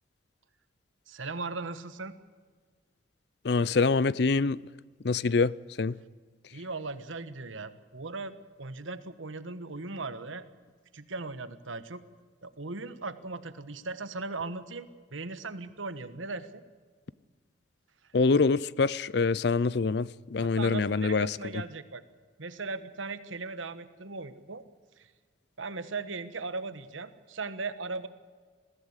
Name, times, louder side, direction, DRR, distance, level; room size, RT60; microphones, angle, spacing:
voice 1, 1.1-2.1 6.5-10.4 10.9-12.0 12.4-16.6 20.4-22.0 22.4-24.6 25.0-25.1 25.6-28.1, right 3 dB, 90° right, 1.3 m, -38 dB
voice 2, 3.4-4.6 5.0-6.0 18.1-21.4, left 4 dB, 55° left, 0.5 m, -25 dB
21.5 x 15.5 x 8.1 m
head